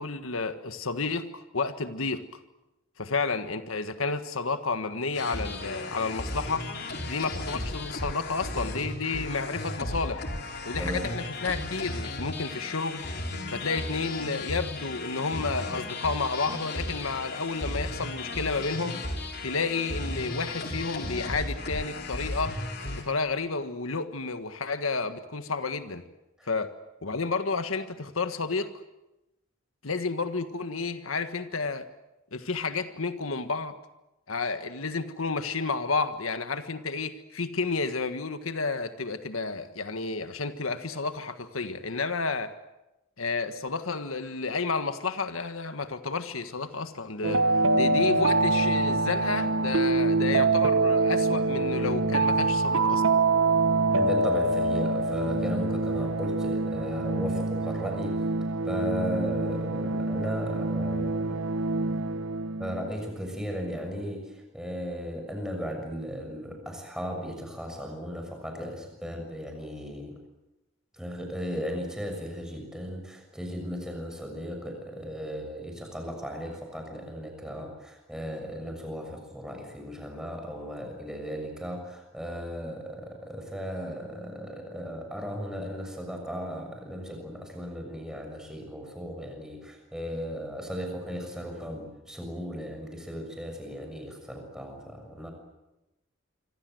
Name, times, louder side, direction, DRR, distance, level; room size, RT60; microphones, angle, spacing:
voice 1, 0.0-2.2 3.0-6.6 7.1-10.2 10.6-13.0 13.5-19.0 19.4-22.6 23.0-26.0 26.5-26.7 27.0-28.7 29.8-31.9 32.3-33.8 34.3-42.5 43.2-47.4 47.7-53.2, left 4 dB, 85° left, 9 dB, 1.6 m, -31 dB
sound 1, 5.1-23.0, left 2 dB, 50° left, 3.8 m, -35 dB
sound 2, 47.2-62.9, right 3 dB, 80° right, 1.1 m, -25 dB
voice 2, 53.9-58.2 58.6-61.4 61.9-62.0 62.6-70.2 70.9-95.3, equal, 5° right, 3 dB, 6.6 m, -36 dB
27.0 x 25.0 x 7.9 m, 0.95 s
head